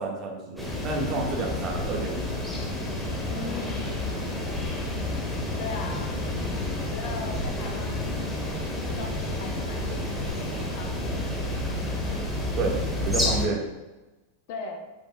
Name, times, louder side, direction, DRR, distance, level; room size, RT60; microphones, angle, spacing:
voice 1, 0.0-2.4 12.6-12.8 13.0-13.6, right 3 dB, 35° right, 0 dB, 1.5 m, -30 dB
sound 1, 0.6-13.5, left 1 dB, ahead, 1.6 m, -30 dB
sound 2, 2.6-9.2, equal, 60° right, 1.9 m, -46 dB
voice 2, 3.3-4.7 5.6-6.2 6.8-8.4 8.8-11.3 14.5-14.9, left 3 dB, 50° left, 3 dB, 1.0 m, -39 dB
10.5 x 5.2 x 2.2 m, 1.1 s
figure-of-eight pair, 90°, 0 cm